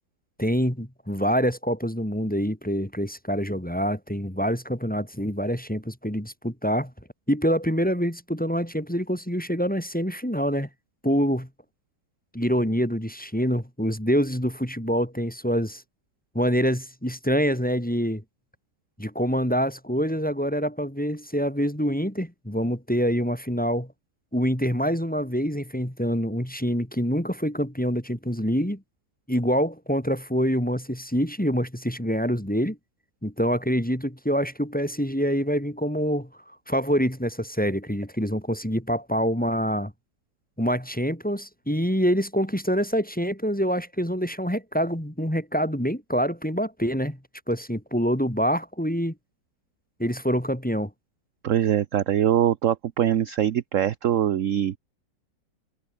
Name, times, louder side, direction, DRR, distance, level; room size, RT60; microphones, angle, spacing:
voice 1, 0.4-6.9 7.3-10.7 11.0-11.5 12.3-15.8 16.3-18.2 19.0-23.9 24.3-28.8 29.3-32.8 33.2-36.3 36.7-39.9 40.6-47.2 47.5-49.1 50.0-50.9, equal, 5° left, 2.4 m, -26 dB
voice 2, 51.4-54.8, right 10 dB, 55° right, 1.0 m, -23 dB
omnidirectional pair, 1.9 m